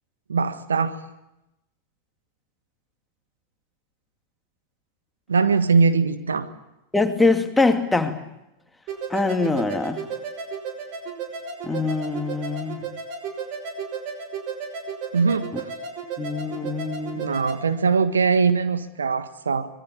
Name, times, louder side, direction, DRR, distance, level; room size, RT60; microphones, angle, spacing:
voice 1, 0.3-1.0 5.3-6.5 15.1-15.5 17.1-19.7, right 5 dB, 70° right, 11 dB, 1.6 m, -21 dB
voice 2, 6.9-8.2 9.1-10.0 11.6-12.8 15.5-15.6 16.2-17.3, left 3 dB, 5° left, 6 dB, 2.5 m, -23 dB
sound 1, 8.9-17.6, right 5 dB, 40° right, 5.7 m, -34 dB
25.0 x 22.0 x 8.5 m, 0.90 s
figure-of-eight pair, 90°, 0 cm